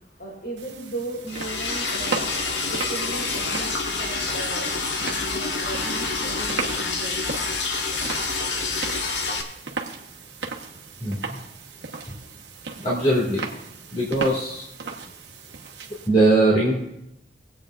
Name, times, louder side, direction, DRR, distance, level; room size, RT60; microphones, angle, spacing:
voice 1, 0.2-2.3 2.7-7.2, right 2 dB, 70° left, -2 dB, 4.3 m, -36 dB
sound 1, 0.6-16.1, right 4 dB, 80° right, 1.3 m, -36 dB
Liquid, 1.3-9.4, left 3 dB, 85° left, 1.4 m, -27 dB
voice 2, 11.0-11.3 12.8-13.5 13.9-14.6 16.1-16.8, right 2 dB, 35° left, -6 dB, 2.2 m, -21 dB
23.0 x 8.6 x 2.5 m, 0.80 s
head